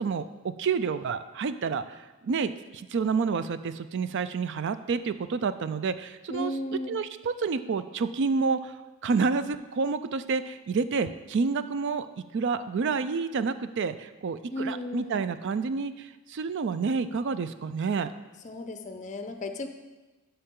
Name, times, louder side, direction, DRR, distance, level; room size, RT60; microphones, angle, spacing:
voice 1, 0.0-6.5 6.9-8.7 9.0-12.1 12.3-18.1, right 5 dB, 55° right, 12 dB, 0.4 m, -29 dB
voice 2, 6.3-7.0 14.5-15.2 18.4-19.7, left 1 dB, 35° left, 6 dB, 0.6 m, -34 dB
11.0 x 5.7 x 3.7 m, 1.2 s
head